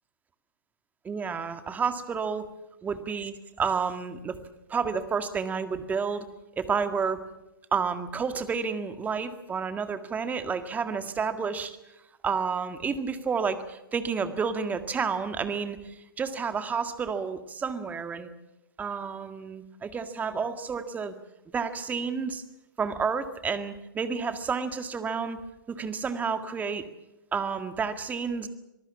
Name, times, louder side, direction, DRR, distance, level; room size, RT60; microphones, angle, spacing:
voice 1, 1.0-2.5 2.8-4.4 4.7-6.3 6.6-7.2 7.7-11.8 12.2-18.3 18.8-21.2 21.5-22.4 22.8-25.4 25.7-26.8 27.3-28.5, right 5 dB, 15° right, 9 dB, 1.9 m, -30 dB
25.5 x 19.0 x 7.2 m, 0.92 s
figure-of-eight pair, 115°, 11 cm